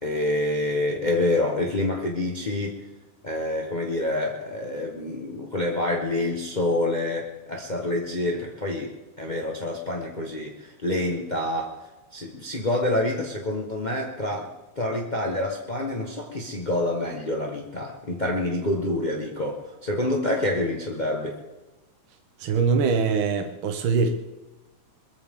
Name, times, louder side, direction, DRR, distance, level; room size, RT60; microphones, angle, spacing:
voice 1, 0.0-2.8 3.2-8.9 9.2-11.8 12.1-21.4, left 1 dB, 45° left, 0 dB, 0.5 m, -27 dB
voice 2, 22.4-24.1, right 5 dB, 60° right, 4 dB, 1.4 m, -23 dB
22.0 x 14.5 x 3.8 m, 1.1 s
omnidirectional pair, 3.4 m